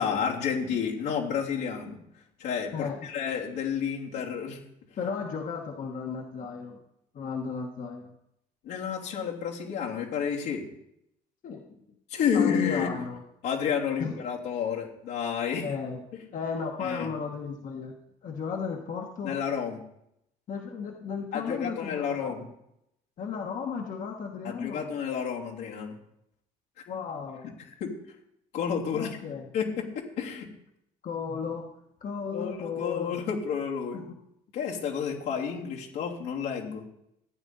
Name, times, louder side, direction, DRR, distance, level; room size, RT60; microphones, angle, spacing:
voice 1, 0.0-2.0 2.4-4.6 8.6-10.6 12.1-12.9 13.4-15.7 16.8-17.1 19.2-19.8 21.3-22.4 24.4-25.9 26.8-26.9 27.8-27.9 28.5-29.2 29.5-30.5 32.3-34.0 34.5-36.8, left 7 dB, 85° left, -3 dB, 3.2 m, -30 dB
voice 2, 5.0-6.8 7.1-8.1 11.4-11.8 12.3-13.2 14.0-14.1 15.6-16.0 16.3-17.9 18.2-19.4 20.5-22.5 23.2-24.9 26.9-27.5 28.9-29.5 31.0-31.7 32.0-33.2 33.9-34.2, left 5 dB, 50° left, 1 dB, 1.4 m, -35 dB
15.0 x 9.1 x 4.1 m, 0.77 s
cardioid pair, 110°, 17 cm